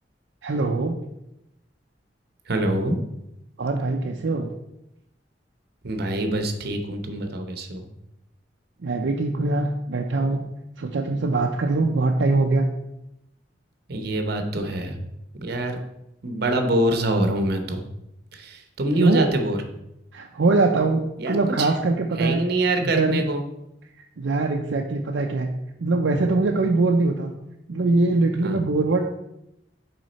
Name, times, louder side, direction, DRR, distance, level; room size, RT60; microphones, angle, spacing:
voice 1, 0.4-1.0 3.6-4.5 8.8-10.4 10.8-12.7 18.9-19.3 20.1-21.0 21.3-22.4 22.8-23.2 24.2-25.5 25.8-27.3 27.7-29.1, right 3 dB, 80° right, 2 dB, 0.5 m, -22 dB
voice 2, 2.5-3.0 5.8-7.9 13.9-15.0 15.4-15.8 16.2-17.8 18.3-19.6 21.2-21.7 22.2-23.4 28.4-28.6, right 1 dB, 60° right, 6 dB, 0.9 m, -25 dB
6.3 x 4.8 x 4.1 m, 0.85 s
head